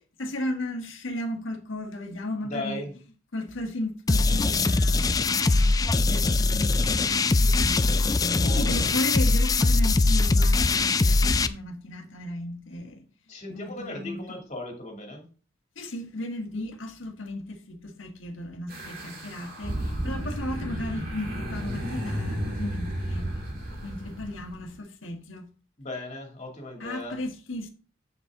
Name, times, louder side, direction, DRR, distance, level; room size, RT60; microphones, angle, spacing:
voice 1, 0.2-2.9 3.3-5.1 5.5-13.0 13.5-14.4 15.7-23.3 23.8-25.5 26.8-27.7, left 1 dB, 80° left, 1.4 m, -35 dB
voice 2, 2.4-2.9 8.4-8.9 13.3-15.3 25.8-27.2, left 1 dB, 35° left, 2.6 m, -37 dB
sound 1, 4.1-11.5, left 3 dB, 20° left, 0.3 m, -22 dB
sound 2, 18.7-24.7, equal, 50° right, 2.7 m, -33 dB
7.5 x 7.1 x 3.8 m
head